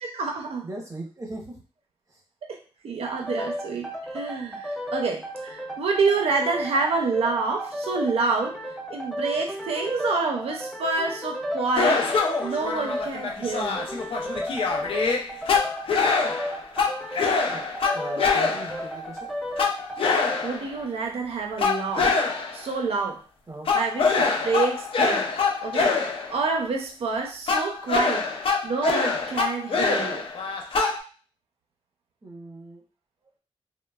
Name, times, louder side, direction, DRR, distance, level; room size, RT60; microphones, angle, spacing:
voice 1, 0.0-0.7 2.5-2.6 2.8-8.6 8.9-12.0 12.4-13.9 20.4-22.2 22.5-23.2 23.7-25.3 25.6-26.0 26.3-28.2 28.6-30.3, right 4 dB, 85° right, 1 dB, 0.5 m, -27 dB
voice 2, 0.6-1.6 2.1-2.2 17.5-17.6 17.9-19.3 23.5-23.7 32.2-32.8, right 2 dB, 35° right, 0 dB, 0.8 m, -38 dB
sound 1, 3.1-20.5, equal, ahead, 0.4 m, -34 dB
sound 2, 11.7-18.9 19.6-20.8 21.6-22.7 23.7-26.4 27.5-31.0, left 4 dB, 65° left, 0.4 m, -25 dB
3.0 x 2.1 x 2.2 m, 0.39 s
wide cardioid pair, 95°, 10 cm